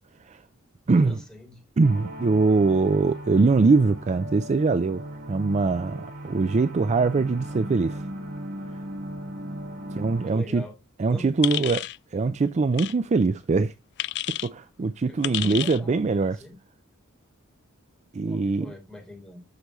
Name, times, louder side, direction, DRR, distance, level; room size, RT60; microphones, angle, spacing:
voice 1, 1.0-1.6 10.3-10.8 11.1-11.8 15.0-16.6 18.3-19.4, left 1 dB, 5° left, 3.5 m, -43 dB
voice 2, 1.8-5.0 5.3-8.0 9.9-10.6 11.0-11.8 12.1-13.7 14.4-16.4 18.1-18.7, right 3 dB, 35° right, 0.4 m, -22 dB
sound 1, 1.8-10.3, right 1 dB, 50° right, 2.6 m, -37 dB
sound 2, 11.4-12.0 12.7-12.9 14.0-14.5 15.2-15.8, left 14 dB, 55° left, 0.3 m, -30 dB
8.0 x 6.8 x 3.0 m
head